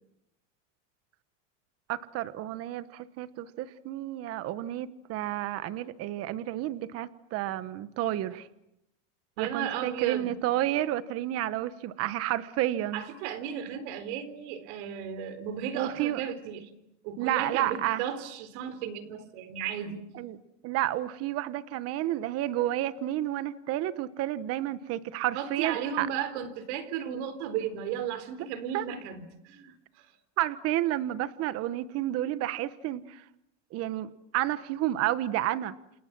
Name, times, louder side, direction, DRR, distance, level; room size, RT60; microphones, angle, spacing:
voice 1, 1.9-8.5 9.4-13.0 15.7-16.2 17.2-18.0 20.1-20.4 20.6-26.1 28.7-28.8 30.4-33.2 33.7-35.7, right 14 dB, 40° right, 15 dB, 1.2 m, -31 dB
voice 2, 9.4-10.3 12.9-16.7 17.0-20.1 25.3-30.1, right 9 dB, 65° right, 12 dB, 4.1 m, -35 dB
29.0 x 28.5 x 6.1 m, 0.80 s
supercardioid pair, 140°, 37 cm